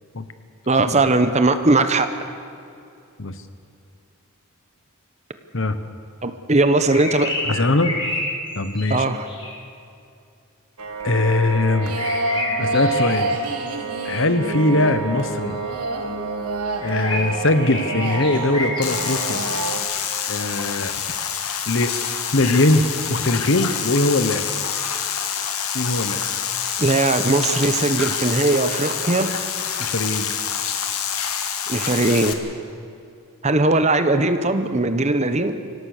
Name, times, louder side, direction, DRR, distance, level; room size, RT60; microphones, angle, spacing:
voice 1, 0.7-2.1 6.2-7.4 8.9-9.3 26.8-29.3 31.7-32.4 33.4-35.5, right 2 dB, 30° right, 9 dB, 1.0 m, -19 dB
sound 1, 6.6-9.6 11.7-13.7 16.8-18.9, left 2 dB, 20° left, 3.1 m, -30 dB
voice 2, 7.5-8.0 8.6-9.0 11.0-11.9 12.6-13.3 14.0-15.6 16.8-19.4 20.3-21.0 21.7-21.9 22.3-24.5 25.7-26.3 29.8-30.3, left 2 dB, 55° left, 10 dB, 1.1 m, -21 dB
sound 2, 10.8-19.8, right 3 dB, 85° right, 1.9 m, -27 dB
sound 3, 18.8-32.3, left 8 dB, 80° left, 1.7 m, -27 dB
25.5 x 17.5 x 6.7 m, 2.5 s
head